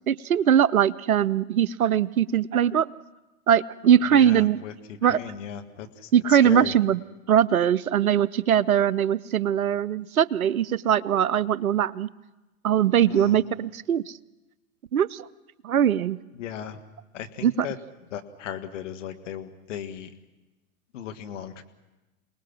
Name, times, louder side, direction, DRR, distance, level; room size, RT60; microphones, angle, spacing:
voice 1, 0.1-2.9 3.5-4.6 5.0-5.2 6.1-7.0 7.3-12.1 12.6-14.1 14.9-15.3 15.6-16.2 17.4-17.7, right 9 dB, 80° right, 21 dB, 0.7 m, -21 dB
voice 2, 4.1-4.7 5.0-6.7 13.1-13.4 16.4-16.8 17.1-17.8 18.1-20.1 20.9-21.6, left 9 dB, 60° left, 7 dB, 1.8 m, -36 dB
28.0 x 19.5 x 6.1 m, 1.1 s
figure-of-eight pair, 100°, 41 cm